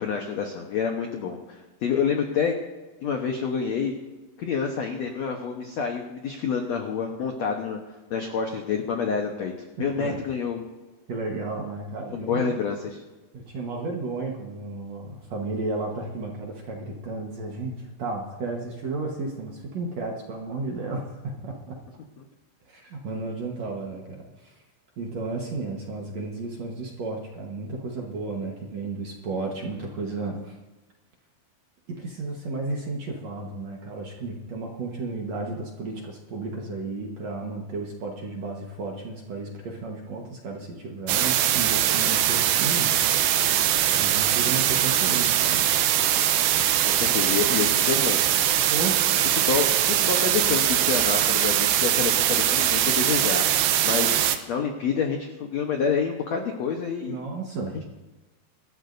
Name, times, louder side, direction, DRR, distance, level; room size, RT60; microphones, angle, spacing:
voice 1, 0.0-2.6 3.0-3.9 4.4-7.8 8.1-9.5 9.8-10.6 12.1-13.0 22.2-22.3 46.8-48.2 49.5-53.4 53.8-54.2 54.5-57.2 57.7-57.8, left 6 dB, 80° left, 2 dB, 1.6 m, -28 dB
voice 2, 11.1-12.5 13.3-21.8 22.7-24.5 25.0-30.5 31.9-43.0 43.9-45.9 48.7-49.0 57.1-57.8, right 3 dB, 60° right, 0 dB, 1.9 m, -33 dB
sound 1, 41.1-54.4, right 11 dB, 85° right, 3.0 m, -22 dB
25.0 x 13.5 x 2.7 m, 1.2 s
omnidirectional pair, 4.7 m